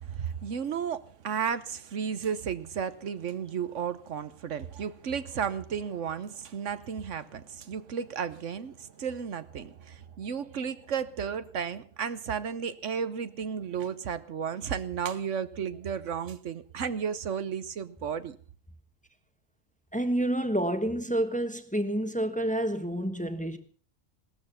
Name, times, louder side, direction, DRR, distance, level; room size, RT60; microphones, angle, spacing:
voice 1, 0.0-18.4, right 7 dB, 70° right, 1.2 m, -33 dB
voice 2, 19.9-23.6, right 1 dB, 5° left, 1.2 m, -29 dB
18.0 x 13.5 x 5.6 m
omnidirectional pair, 1.3 m